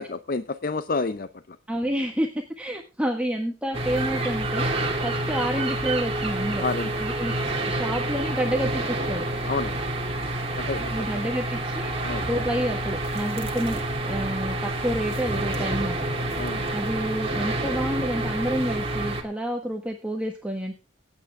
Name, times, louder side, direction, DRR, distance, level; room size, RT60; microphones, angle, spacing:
voice 1, 0.0-1.6 6.6-7.0 9.4-9.8 10.6-10.9 12.0-12.3 16.4-16.7, left 3 dB, 45° left, 11 dB, 0.6 m, -29 dB
voice 2, 1.7-6.6 7.0-7.3 7.6-9.3 10.9-11.9 12.2-16.0 16.7-20.8, equal, 5° right, 1 dB, 1.5 m, -29 dB
sound 1, 3.7-19.2, right 1 dB, 30° right, 2.6 m, -28 dB
24.5 x 9.0 x 3.6 m, 0.33 s
head